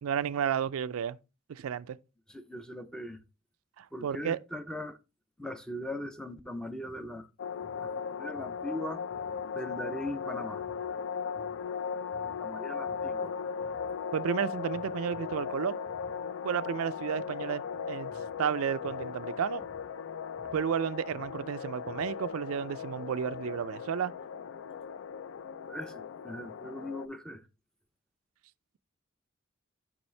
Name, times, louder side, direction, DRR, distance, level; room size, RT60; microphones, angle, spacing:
voice 1, 0.0-1.2 1.5-2.0 3.8-4.4 14.1-15.8 16.4-18.1 18.4-19.6 20.5-24.1, right 8 dB, 85° right, 0.4 m, -32 dB
voice 2, 2.3-3.2 3.9-5.0 5.4-7.3 7.8-7.9 8.2-9.0 9.5-10.6 12.2-13.4 25.7-27.4, left 1 dB, 5° left, 0.5 m, -39 dB
sound 1, 6.9-14.4 14.7-22.4, equal, 20° left, 1.0 m, -58 dB
sound 2, 7.4-27.1, left 6 dB, 65° left, 0.4 m, -37 dB
7.0 x 5.4 x 3.2 m
head